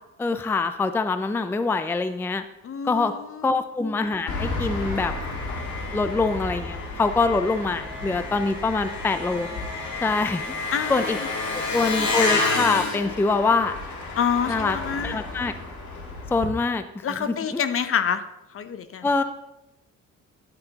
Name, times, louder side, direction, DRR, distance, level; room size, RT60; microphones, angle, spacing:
voice 1, 0.2-2.4 2.8-3.1 3.4-5.1 5.9-9.5 10.0-10.4 10.9-11.2 11.7-13.7 14.5-14.8 15.0-15.5 16.3-16.8 17.2-17.6 19.0-19.2, left 3 dB, 10° left, 10 dB, 0.4 m, -24 dB
voice 2, 2.6-3.6 10.7-11.3 14.2-15.2 17.0-18.2 18.5-19.1, left 7 dB, 45° left, 11 dB, 0.6 m, -27 dB
Engine, 4.3-16.5, left 3 dB, 70° left, 1.9 m, -30 dB
9.3 x 9.1 x 2.9 m, 0.94 s
cardioid pair, 90°, 30 cm